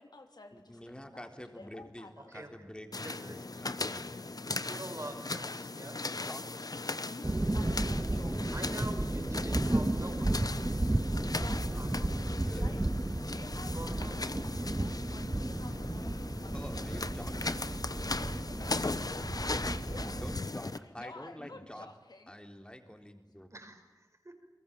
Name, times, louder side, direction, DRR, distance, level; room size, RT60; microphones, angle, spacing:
voice 1, 0.0-2.3 7.0-8.6 11.0-11.8 12.5-12.9 13.3-16.8 19.8-20.2 20.8-22.4, left 2 dB, 90° left, 5 dB, 3.2 m, -51 dB
voice 2, 0.5-4.2 6.2-6.7 11.7-11.8 12.4-12.8 16.5-17.6 20.2-21.9 22.3-23.5, equal, 15° left, 6 dB, 3.7 m, -47 dB
voice 3, 2.2-2.7 3.0-3.4 4.6-6.0 8.5-11.5 11.8-12.2 13.7-14.4 23.5-24.5, right 1 dB, 45° right, 4 dB, 5.6 m, -46 dB
sound 1, 2.9-20.8, left 3 dB, 65° left, 1.1 m, -38 dB
sound 2, 7.2-20.4, right 1 dB, 30° right, 1.0 m, -33 dB
30.0 x 22.0 x 8.9 m, 1.0 s
wide cardioid pair, 55°, 7 cm